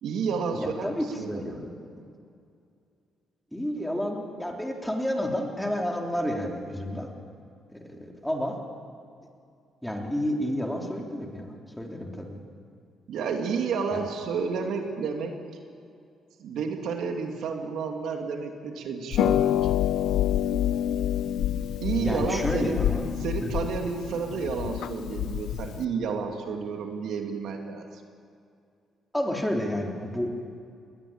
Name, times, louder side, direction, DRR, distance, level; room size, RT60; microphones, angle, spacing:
voice 1, 0.0-1.4 13.1-15.3 16.4-19.5 21.8-22.8 23.2-28.0, right 5 dB, 75° right, 4 dB, 2.5 m, -31 dB
voice 2, 0.5-2.0 3.5-7.1 7.7-8.6 9.8-12.4 13.9-14.1 22.0-23.1 23.4-23.5 29.1-30.4, equal, 5° left, 1 dB, 3.5 m, -30 dB
Harp, 19.1-25.8, left 11 dB, 80° left, 0.7 m, -27 dB
20.0 x 20.0 x 8.7 m, 2.4 s
cardioid pair, 90°, 0 cm